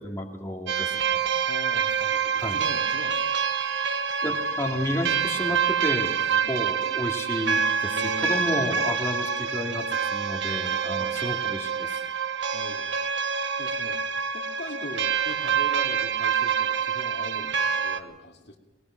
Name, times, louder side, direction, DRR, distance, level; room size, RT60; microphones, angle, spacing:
voice 1, 0.0-1.3 2.4-2.6 4.2-12.0, equal, 15° left, 0 dB, 2.3 m, -32 dB
sound 1, 0.7-18.0, right 7 dB, 70° right, 1.1 m, -26 dB
voice 2, 1.5-3.2 6.3-6.5 7.8-8.5 11.0-11.4 12.5-12.9 13.6-14.0 14.3-18.6, left 1 dB, 60° left, 2 dB, 2.3 m, -41 dB
21.0 x 19.5 x 6.3 m, 1.0 s
head